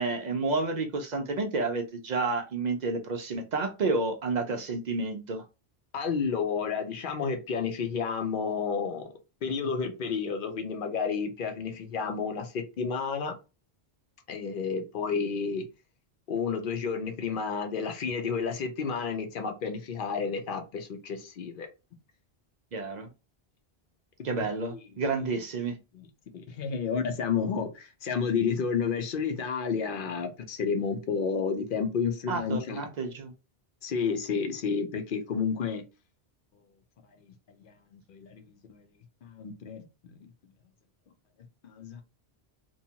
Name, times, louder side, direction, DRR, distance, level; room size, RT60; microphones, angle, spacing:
voice 1, 0.0-5.4 22.7-23.1 24.2-25.8 32.3-33.3, right 3 dB, 55° right, 0.5 m, -30 dB
voice 2, 5.9-9.1 9.4-13.4 14.3-15.6 16.3-21.7 24.7-24.8 25.9-26.1 26.3-32.8 33.8-35.8 37.6-38.8 39.2-39.9 40.2-40.3 41.6-42.0, left 5 dB, 60° left, 0.7 m, -31 dB
2.7 x 2.2 x 2.7 m
omnidirectional pair, 1.1 m